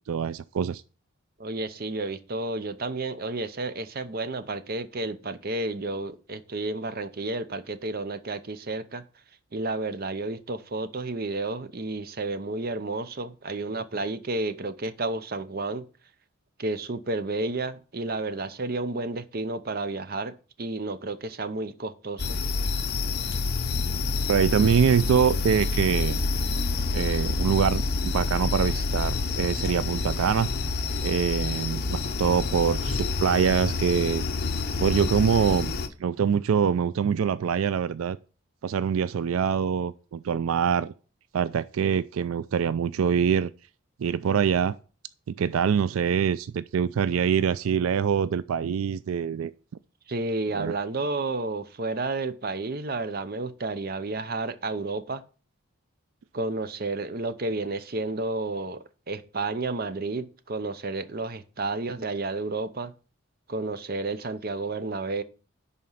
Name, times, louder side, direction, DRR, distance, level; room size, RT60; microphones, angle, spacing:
voice 1, 0.1-0.8 24.3-26.2 26.9-30.5 31.0-34.2 34.8-35.7 36.0-38.2 38.6-40.9 41.3-43.5 44.0-44.7 45.3-49.5 50.5-50.7, right 7 dB, 85° right, 0.4 m, -24 dB
voice 2, 1.4-9.0 9.5-15.9 16.6-22.4 50.1-55.2 56.3-62.9 63.5-65.2, right 2 dB, 45° right, 0.7 m, -31 dB
sound 1, 22.2-35.9, left 3 dB, 50° left, 0.8 m, -28 dB
10.5 x 4.3 x 5.6 m
head